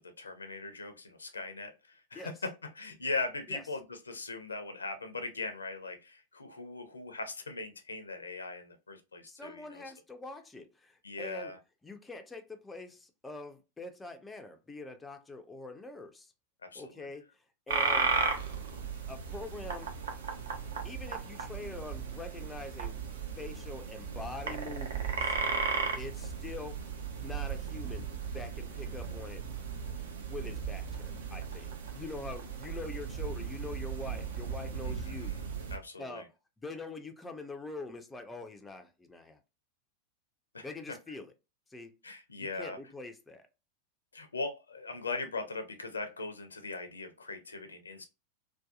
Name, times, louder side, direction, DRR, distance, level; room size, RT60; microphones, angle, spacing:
voice 1, 0.0-2.5 2.8-9.8 11.0-11.6 16.6-17.1 34.8-35.4 35.7-36.2 40.5-40.6 42.0-42.8 44.1-48.0, left 3 dB, 75° left, 0.5 m, -40 dB
voice 2, 9.3-11.5 11.8-16.3 16.7-18.1 19.1-19.9 20.8-23.0 23.4-25.4 26.0-26.8 27.2-28.1 28.3-29.5 30.3-35.4 36.0-39.4 40.6-41.3 41.7-42.0 42.4-43.5, left 3 dB, 10° left, 0.4 m, -44 dB
sound 1, 17.7-35.8, right 5 dB, 65° right, 0.5 m, -36 dB
2.6 x 2.2 x 2.3 m
figure-of-eight pair, 90°, 0 cm